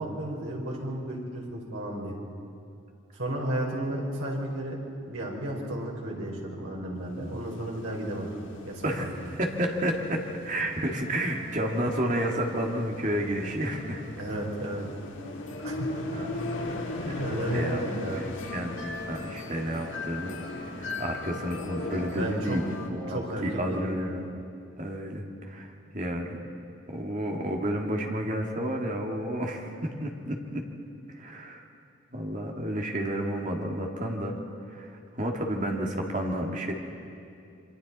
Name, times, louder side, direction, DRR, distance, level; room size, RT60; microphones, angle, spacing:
voice 1, 0.0-2.2 3.1-4.8 5.1-8.3 8.6-9.1 14.2-14.9 15.6-15.9 17.2-18.3 22.2-22.6 23.1-24.2, right 1 dB, 90° right, -2 dB, 4.7 m, -33 dB
sound 1, 7.2-22.9, left 1 dB, 70° left, 2.1 m, -37 dB
voice 2, 8.8-14.0 16.1-22.6 22.9-24.3 24.8-26.4 26.9-30.6 31.1-31.6 32.1-34.4 34.7-34.9 35.2-36.7, right 1 dB, 40° right, 1 dB, 2.1 m, -31 dB
28.0 x 24.0 x 4.2 m, 2.5 s
head